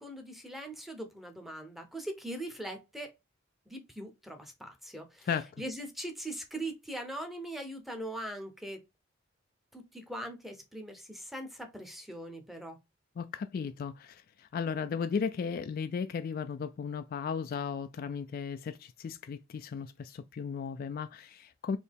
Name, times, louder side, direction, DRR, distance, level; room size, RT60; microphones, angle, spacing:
voice 1, 0.0-3.1 3.7-5.3 5.6-8.8 9.7-12.8, right 1 dB, ahead, 0.8 m, -41 dB
voice 2, 13.2-21.8, left 6 dB, 50° left, 0.3 m, -35 dB
4.2 x 2.8 x 3.5 m
head